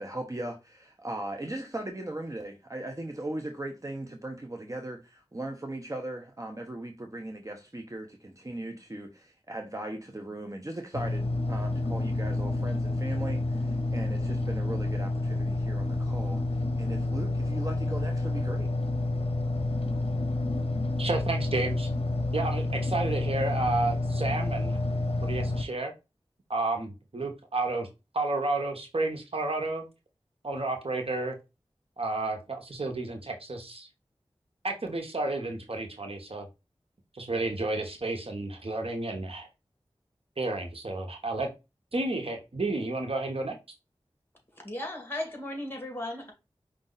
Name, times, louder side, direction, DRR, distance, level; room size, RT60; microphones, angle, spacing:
voice 1, 0.0-18.7, right 1 dB, 30° right, 0.8 m, -38 dB
sound 1, 10.9-25.6, left 2 dB, 65° left, 0.7 m, -29 dB
voice 2, 21.0-21.9 22.3-24.8 25.2-25.9 26.5-27.9 28.1-29.8 30.4-31.3 32.0-33.9 34.6-36.5 37.1-39.5 40.4-41.5 41.9-43.5, right 2 dB, 65° right, 1.1 m, -31 dB
voice 3, 44.6-46.3, left 1 dB, 20° left, 2.1 m, -36 dB
5.2 x 2.5 x 3.9 m
wide cardioid pair, 50°, 11 cm